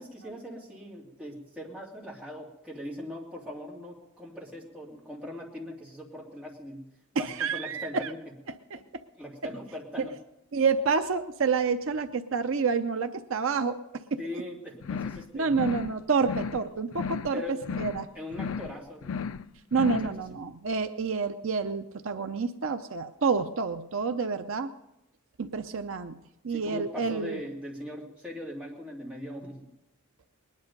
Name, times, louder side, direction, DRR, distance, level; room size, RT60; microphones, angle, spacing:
voice 1, 0.0-6.9 7.1-8.2 9.1-10.1 14.2-15.5 17.3-17.6 18.1-19.2 26.5-29.7, left 1 dB, 5° right, -4 dB, 2.7 m, -40 dB
voice 2, 7.2-8.1 8.7-9.0 10.0-10.1 10.5-14.2 15.3-18.1 19.7-24.7 25.4-26.2 26.4-27.4, right 5 dB, 60° right, 9 dB, 0.6 m, -28 dB
sound 1, 14.8-15.3 15.5-15.9 16.2-16.7 16.9-17.4 17.6-18.1 18.3-18.7 19.0-19.5 19.7-20.1, left 6 dB, 65° left, 0.4 m, -34 dB
20.5 x 10.5 x 5.3 m, 0.90 s
head